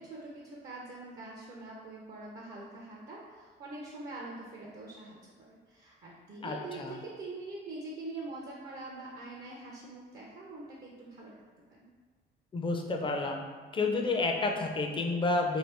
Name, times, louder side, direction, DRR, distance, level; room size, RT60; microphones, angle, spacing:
voice 1, 0.0-5.2 5.5-11.3 11.7-11.9, right 2 dB, 50° right, -4 dB, 0.6 m, -44 dB
voice 2, 6.4-7.0 12.5-13.5 13.7-15.6, left 3 dB, 25° left, 3 dB, 0.4 m, -30 dB
2.7 x 2.7 x 3.3 m, 1.5 s
cardioid pair, 90°, 20 cm